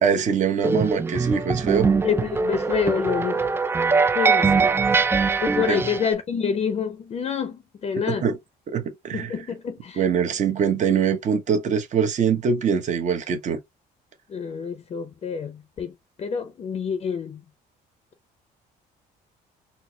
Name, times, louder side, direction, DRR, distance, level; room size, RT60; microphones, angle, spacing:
voice 1, 0.0-1.9 4.6-4.7 5.7-5.8 8.0-8.4 8.7-9.3 10.0-13.6, right 6 dB, 45° right, 0.9 m, -23 dB
sound 1, 0.6-6.1, right 4 dB, 15° right, 0.3 m, -22 dB
voice 2, 2.0-3.4 4.1-4.6 5.4-8.3 9.1-10.0 14.3-17.4, left 7 dB, 40° left, 0.6 m, -27 dB
4.2 x 2.0 x 2.8 m
cardioid pair, 110°, 17 cm